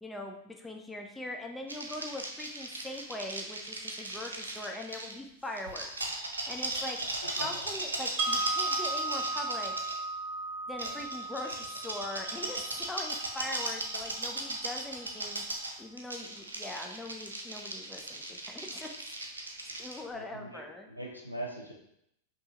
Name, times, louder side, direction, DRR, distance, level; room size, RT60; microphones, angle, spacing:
voice 1, 0.0-5.9 6.5-7.0 7.3-9.8 10.7-15.4 15.8-18.9 19.8-20.9, left 1 dB, 10° left, 2 dB, 0.4 m, -41 dB
sound 1, 1.7-5.2 5.6-10.0 10.8-20.0, right 2 dB, 75° right, 0.5 m, -37 dB
voice 2, 7.2-7.6 20.1-21.7, right 1 dB, 90° left, -2 dB, 0.7 m, -41 dB
Wind chime, 8.2-14.2, right 3 dB, 20° right, 0.7 m, -36 dB
5.3 x 2.7 x 2.9 m, 0.76 s
figure-of-eight pair, 90°, 0 cm